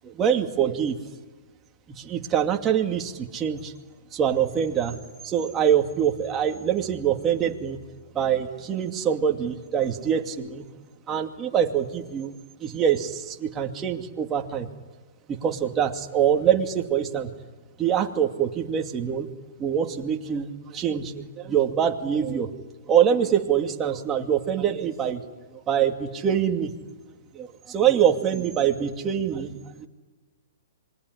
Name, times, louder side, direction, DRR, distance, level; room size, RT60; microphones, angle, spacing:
voice 1, 0.0-1.0 1.9-3.7 4.1-5.0 5.2-7.8 8.1-10.7 11.1-14.7 15.3-17.3 17.8-19.3 19.6-22.5 22.9-25.2 25.5-26.7 27.3-29.9, right 9 dB, 20° right, 3 dB, 2.5 m, -24 dB
26.5 x 22.0 x 10.0 m, 1.3 s
hypercardioid pair, 140°, 0 cm